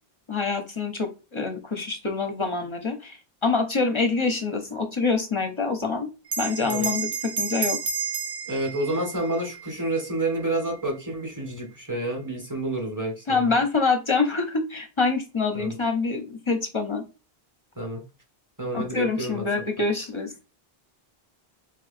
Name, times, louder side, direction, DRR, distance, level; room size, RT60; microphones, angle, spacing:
voice 1, 0.3-6.1 6.4-7.8 13.3-17.0 18.7-20.3, left 4 dB, 35° left, 6 dB, 0.6 m, -26 dB
Bell, 6.3-11.1, right 6 dB, 40° right, 0.6 m, -32 dB
voice 2, 6.6-6.9 8.5-13.6 15.5-15.8 17.7-18.0 18.6-19.5, right 1 dB, 20° right, 0 dB, 1.4 m, -29 dB
4.6 x 3.8 x 2.5 m, 0.30 s
omnidirectional pair, 1.0 m